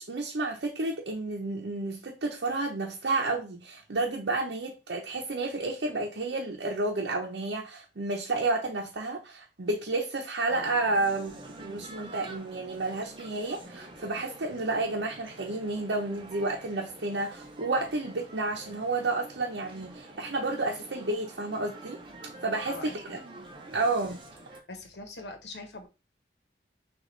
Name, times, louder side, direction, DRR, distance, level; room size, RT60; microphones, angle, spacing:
voice 1, 0.0-22.0 22.4-23.2 23.7-24.2, right 2 dB, 85° right, 0.7 m, -31 dB
Male speech man speaking, 10.5-24.6, right 2 dB, 30° right, 0.7 m, -47 dB
voice 2, 24.7-25.9, left 2 dB, 75° left, 1.0 m, -42 dB
6.4 x 2.5 x 3.1 m
head